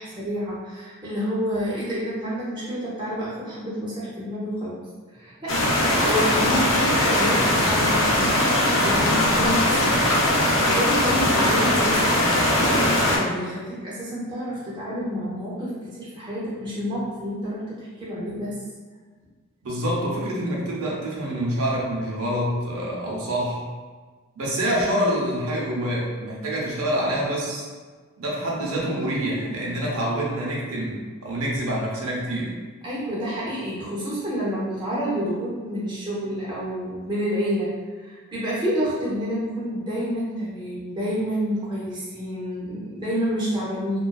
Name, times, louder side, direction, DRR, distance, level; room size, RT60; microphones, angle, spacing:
voice 1, 0.0-4.8 5.1-5.6 6.0-10.0 10.3-18.6 32.8-44.0, equal, 20° right, -8 dB, 0.5 m, -29 dB
sound 1, 5.5-13.2, left 1 dB, 65° left, 0.5 m, -20 dB
voice 2, 19.6-23.7 24.4-27.7 28.2-32.5, right 1 dB, 80° right, -4 dB, 0.6 m, -26 dB
2.4 x 2.3 x 2.2 m, 1.4 s
head